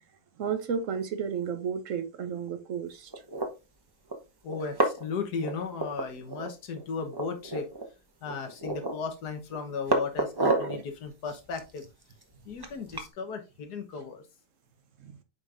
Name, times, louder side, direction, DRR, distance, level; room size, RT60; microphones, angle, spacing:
voice 1, 0.4-3.1 15.0-15.2, right 7 dB, 55° right, 1.2 m, -32 dB
sound 1, 3.1-3.5 4.1-4.2 4.5-5.1 5.4-6.5 6.7-6.8 7.1-7.9 8.3-9.1 9.5-10.8 11.3-13.1, right 2 dB, 20° right, 0.7 m, -30 dB
voice 2, 4.4-7.7 8.2-11.8 12.5-14.2, left 5 dB, 75° left, 1.7 m, -35 dB
8.3 x 5.2 x 2.5 m
omnidirectional pair, 1.7 m